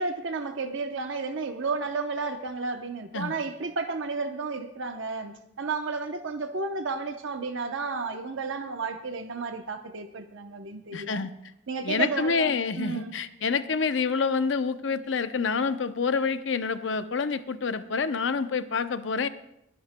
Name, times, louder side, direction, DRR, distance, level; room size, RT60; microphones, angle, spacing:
voice 1, 0.0-11.3 11.7-13.2, right 4 dB, 75° right, 6 dB, 0.8 m, -32 dB
voice 2, 10.9-11.3 11.8-19.3, left 5 dB, 70° left, 11 dB, 0.6 m, -27 dB
27.0 x 11.0 x 2.2 m, 0.83 s
head